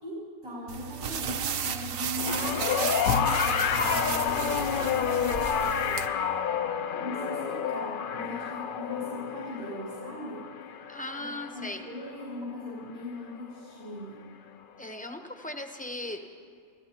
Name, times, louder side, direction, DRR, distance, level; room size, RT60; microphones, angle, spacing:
voice 1, 0.0-6.1 7.0-10.5 11.2-14.2, left 1 dB, 90° right, -7 dB, 3.8 m, -40 dB
crumpling paper towel, 0.7-6.1, right 8 dB, 55° right, 0.7 m, -34 dB
sound 1, 2.2-12.6 13.7-13.8, left 7 dB, 65° left, 0.5 m, -30 dB
Vehicle / Engine, 3.1-6.1, left 6 dB, 80° left, 1.0 m, -35 dB
voice 2, 10.9-11.8 14.8-16.2, left 1 dB, 10° left, 5 dB, 0.6 m, -37 dB
27.0 x 15.0 x 2.9 m, 2.2 s
omnidirectional pair, 1.4 m